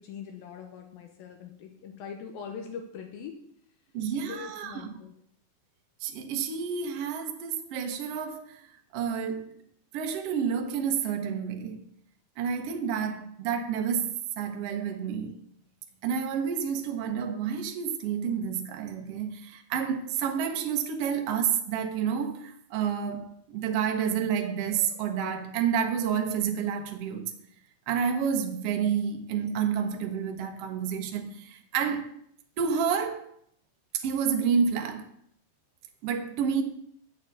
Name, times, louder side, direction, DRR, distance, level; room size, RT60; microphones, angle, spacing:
voice 1, 0.0-3.4 4.3-5.1, left 6 dB, 75° left, 2.5 m, -42 dB
voice 2, 3.9-4.9 6.0-8.7 8.9-9.5 9.9-11.8 12.4-15.4 16.0-27.3 27.9-32.1 32.6-33.3 33.9-35.1 36.0-36.6, right 7 dB, 80° right, 1.3 m, -29 dB
7.9 x 6.9 x 8.3 m
omnidirectional pair, 4.7 m